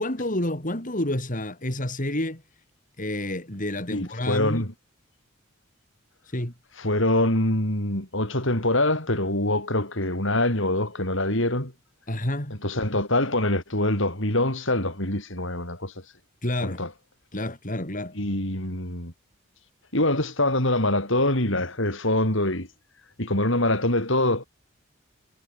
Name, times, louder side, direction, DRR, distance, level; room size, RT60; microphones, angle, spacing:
voice 1, 0.0-2.4 3.0-4.6 6.2-6.5 12.1-12.6 16.4-16.8 17.3-18.2, left 1 dB, 40° left, 4.7 m, -29 dB
voice 2, 3.9-4.7 6.8-11.7 12.6-15.9 16.6-16.9 18.1-19.1 19.9-22.7 23.2-24.5, left 1 dB, 65° left, 7.8 m, -24 dB
head